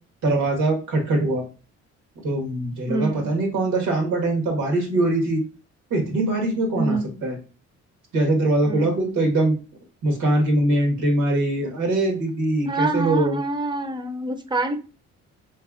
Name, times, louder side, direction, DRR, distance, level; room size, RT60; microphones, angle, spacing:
voice 1, 0.2-1.4 2.2-5.4 5.9-7.4 8.1-9.6 10.0-13.4, right 2 dB, 85° right, 1.5 m, -22 dB
voice 2, 2.9-3.4 6.7-7.2 8.6-9.2 12.7-14.8, right 2 dB, 15° right, 0.5 m, -27 dB
3.3 x 3.2 x 2.4 m
cardioid pair, 90°, 30 cm